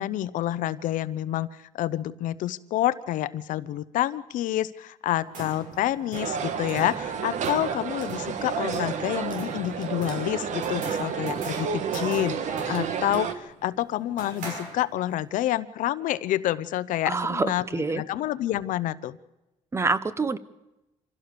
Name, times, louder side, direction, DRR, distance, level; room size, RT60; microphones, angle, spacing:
voice 1, 0.0-1.5 1.7-17.6 17.9-19.2, left 13 dB, 80° left, 15 dB, 0.8 m, -28 dB
sound 1, 5.1-15.2, right 2 dB, 85° right, 6.3 m, -42 dB
sound 2, 6.1-13.3, right 7 dB, 65° right, 1.6 m, -31 dB
voice 2, 17.0-18.0 19.7-20.4, right 3 dB, 20° right, 15 dB, 0.9 m, -26 dB
26.0 x 16.0 x 6.9 m, 0.97 s
cardioid pair, 135°, 13 cm